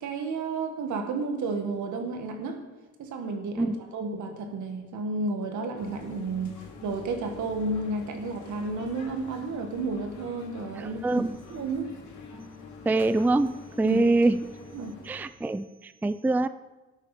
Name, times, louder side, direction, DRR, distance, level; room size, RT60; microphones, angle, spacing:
voice 1, 0.0-2.6 3.0-11.9 13.8-14.0 14.7-14.9, right 3 dB, 75° right, 5 dB, 1.9 m, -32 dB
sound 1, 5.7-15.3, left 3 dB, 70° left, 2.9 m, -46 dB
voice 2, 10.8-11.4 12.9-14.4 15.0-16.5, right 2 dB, 5° right, 14 dB, 0.4 m, -24 dB
12.5 x 8.8 x 5.0 m, 1.1 s
cardioid pair, 90°, 30 cm